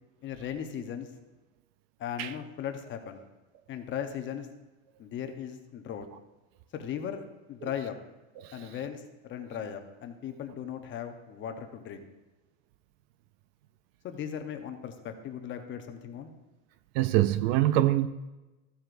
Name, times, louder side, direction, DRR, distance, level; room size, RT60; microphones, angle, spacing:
voice 1, 0.2-1.1 2.0-3.2 3.7-4.5 5.0-6.1 6.7-7.2 7.5-8.0 8.5-12.1 14.0-16.3, left 8 dB, 30° left, 6 dB, 0.9 m, -37 dB
voice 2, 8.4-8.7 16.9-18.1, right 14 dB, 50° right, 13 dB, 0.4 m, -25 dB
14.0 x 7.7 x 2.6 m, 1.1 s
supercardioid pair, 145°, 40 cm